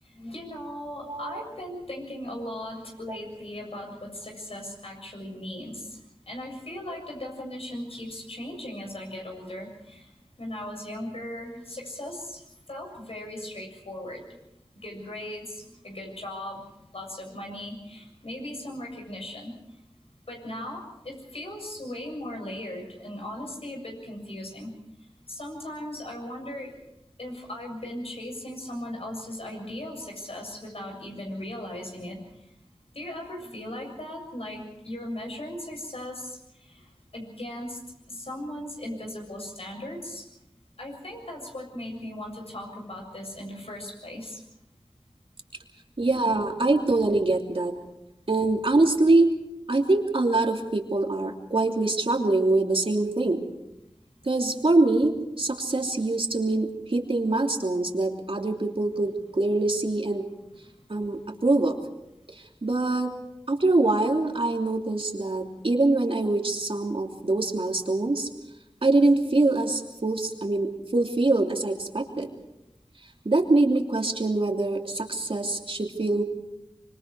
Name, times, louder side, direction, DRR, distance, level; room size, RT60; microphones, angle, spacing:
voice 1, 0.1-6.0 6.3-10.1 10.4-14.4 14.7-19.6 20.3-24.7 25.3-26.8 27.2-32.4 32.9-36.9 37.1-37.8 38.1-40.3 40.8-44.4, left 1 dB, 75° left, 1 dB, 7.1 m, -38 dB
voice 2, 1.1-1.4 46.0-47.7 48.3-49.3 49.7-53.5 54.2-60.3 60.9-61.8 62.3-63.1 63.5-68.3 68.8-72.3 73.2-76.2, right 2 dB, 65° right, 2 dB, 2.9 m, -24 dB
25.5 x 25.0 x 4.7 m, 0.88 s
wide cardioid pair, 55°, 10 cm